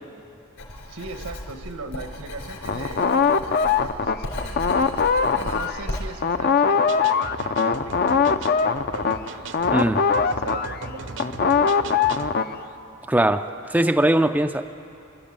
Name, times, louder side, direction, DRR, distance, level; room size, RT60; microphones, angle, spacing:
Writing, 0.6-6.1, left 1 dB, 65° left, 4.0 m, -36 dB
voice 1, 0.9-4.6 5.3-9.2 9.8-12.2, right 3 dB, 85° right, 7 dB, 1.4 m, -39 dB
sound 1, 2.6-6.0 6.2-12.6, left 5 dB, 45° left, 0.6 m, -22 dB
sound 2, 6.9-12.4, right 4 dB, 60° right, 0.8 m, -38 dB
voice 2, 13.1-14.7, right 1 dB, 5° right, 7 dB, 0.4 m, -20 dB
25.0 x 12.5 x 8.8 m, 2.8 s
head